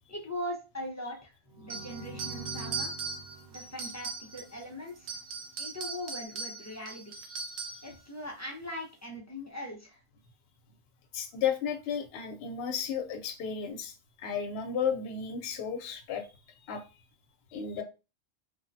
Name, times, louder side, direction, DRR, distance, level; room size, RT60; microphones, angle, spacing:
voice 1, 0.1-3.0 3.5-5.2 5.6-7.1 7.8-10.0, left 1 dB, 25° left, 0 dB, 0.4 m, -40 dB
sound 1, 1.5-5.2, right 2 dB, 55° right, 0.9 m, -46 dB
sound 2, 1.7-4.6 5.0-7.9, right 4 dB, 80° right, 0.9 m, -39 dB
voice 2, 11.1-16.3 16.7-16.8 17.5-17.8, left 7 dB, 70° left, 5 dB, 0.8 m, -33 dB
3.2 x 2.0 x 2.6 m, 0.30 s
omnidirectional pair, 1.1 m